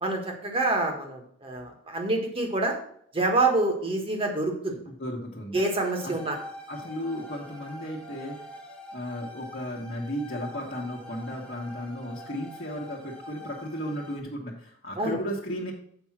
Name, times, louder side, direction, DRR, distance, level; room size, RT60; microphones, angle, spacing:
voice 1, 0.0-2.7 3.1-4.8 5.5-6.4 15.0-15.2, right 2 dB, 25° right, 3 dB, 1.5 m, -27 dB
voice 2, 4.9-5.6 6.0-6.2 6.7-8.5 8.9-15.7, equal, 45° left, -4 dB, 1.3 m, -35 dB
sound 1, 5.5-14.2, left 1 dB, 5° left, 1.1 m, -45 dB
7.1 x 5.4 x 5.9 m, 0.66 s
head